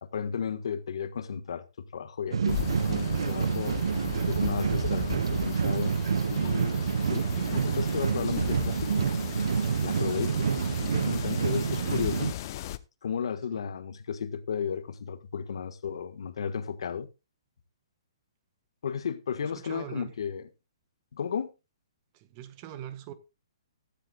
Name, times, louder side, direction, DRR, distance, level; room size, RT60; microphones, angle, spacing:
voice 1, 0.0-3.8 4.3-6.0 6.3-9.1 9.8-10.5 10.8-12.3 13.0-17.1 18.8-20.5 21.1-21.5, left 7 dB, 70° left, 1.6 m, -34 dB
sound 1, 2.3-12.3, right 6 dB, 75° right, 0.7 m, -28 dB
sound 2, 2.5-12.8, left 13 dB, 45° left, 0.9 m, -37 dB
voice 2, 19.4-20.1 22.1-23.1, right 11 dB, 35° right, 1.5 m, -42 dB
15.5 x 13.5 x 2.4 m
hypercardioid pair, 145°, 3 cm